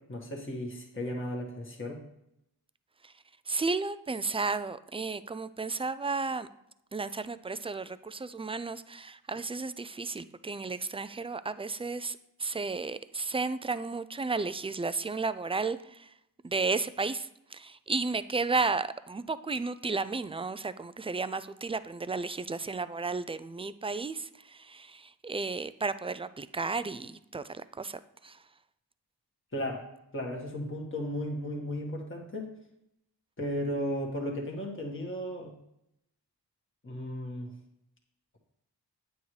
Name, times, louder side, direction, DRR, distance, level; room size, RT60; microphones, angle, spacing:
voice 1, 0.1-2.0 29.5-29.9 30.1-32.5 33.4-35.6 36.8-37.5, equal, 30° left, -1 dB, 1.7 m, -35 dB
voice 2, 3.5-6.5 6.9-16.1 16.4-28.4, right 4 dB, 15° right, 14 dB, 0.4 m, -33 dB
8.9 x 7.1 x 3.3 m, 0.81 s
cardioid pair, 45°, 41 cm